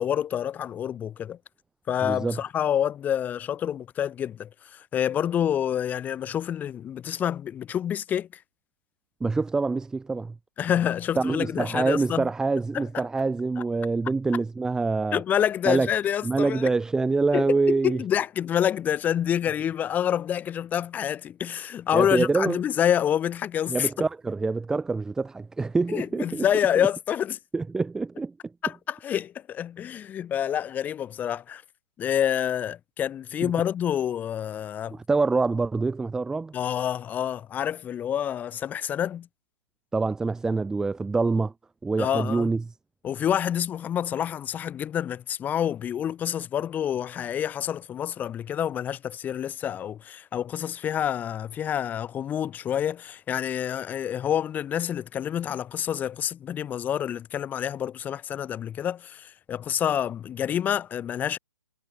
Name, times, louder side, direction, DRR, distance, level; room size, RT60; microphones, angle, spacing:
voice 1, 0.0-1.4 1.9-8.3 10.6-12.3 12.7-13.0 15.1-16.7 17.3-17.5 17.8-24.1 25.9-27.4 28.6-31.6 32.0-35.0 36.5-39.3 42.0-42.5 43.0-61.4, left 9 dB, 10° left, 5.4 m, -27 dB
voice 2, 2.0-2.4 9.2-10.3 11.2-15.2 15.7-15.9 16.2-18.0 21.9-22.6 23.7-26.4 27.5-28.3 33.4-33.5 34.9-36.5 39.9-41.5 41.8-42.6, right 3 dB, 5° right, 2.3 m, -25 dB
hypercardioid pair, 150°, 13 cm